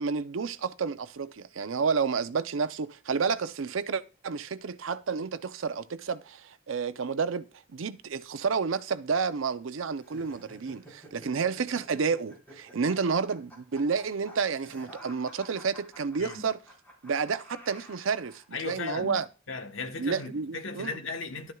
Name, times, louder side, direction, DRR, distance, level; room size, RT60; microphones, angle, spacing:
voice 1, 0.0-7.5 7.7-16.6 17.0-19.3 20.0-21.0, right 5 dB, 85° right, 0.6 m, -30 dB
sound 1, 10.0-18.4, equal, 10° left, 4.4 m, -51 dB
voice 2, 16.2-16.5 18.5-21.5, left 4 dB, 80° left, 1.2 m, -37 dB
12.0 x 9.5 x 2.3 m
head